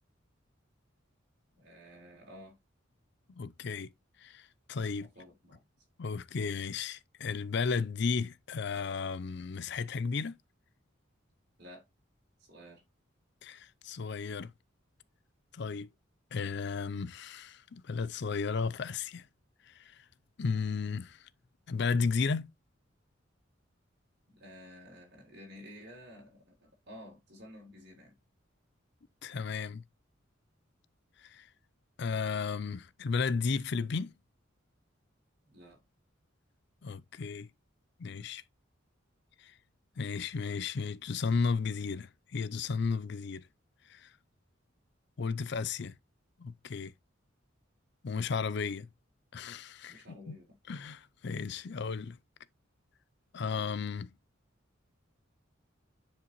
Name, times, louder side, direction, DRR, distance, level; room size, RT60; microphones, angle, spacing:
voice 1, 1.6-2.6 5.0-5.7 11.6-11.9 12.4-12.8 24.3-28.1 35.4-35.8 49.9-50.6, equal, 55° right, 3.8 m, -52 dB
voice 2, 3.3-3.9 4.2-5.1 6.0-10.4 13.4-14.5 15.5-15.9 16.3-19.3 19.7-20.0 20.4-21.3 21.7-22.5 29.2-29.8 31.2-31.5 32.0-34.1 36.8-37.5 38.0-38.4 39.4-39.5 40.0-43.4 43.9-44.1 45.2-45.9 46.4-46.9 48.0-48.9 49.3-50.4 50.7-52.2 53.3-54.1, left 5 dB, 60° left, 0.5 m, -34 dB
9.7 x 5.2 x 3.0 m
head